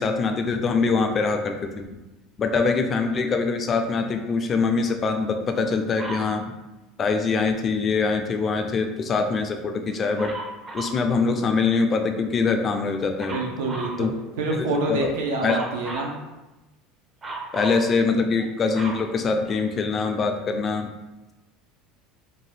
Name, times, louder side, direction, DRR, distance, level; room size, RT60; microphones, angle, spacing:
voice 1, 0.0-1.8 2.4-6.5 7.0-10.3 10.7-13.4 14.0-14.1 14.5-15.1 15.4-15.6 17.5-20.9, left 4 dB, 30° left, 5 dB, 0.3 m, -23 dB
Dog, 6.0-6.3 10.2-11.0 13.2-14.0 15.5-16.2 17.2-17.9 18.4-19.9 20.6-20.7, right 2 dB, 25° right, 0.5 m, -35 dB
voice 2, 13.3-14.1 14.4-16.2, right 2 dB, 85° right, 2 dB, 0.6 m, -26 dB
2.6 x 2.2 x 3.2 m, 1.0 s
supercardioid pair, 120°, 0 cm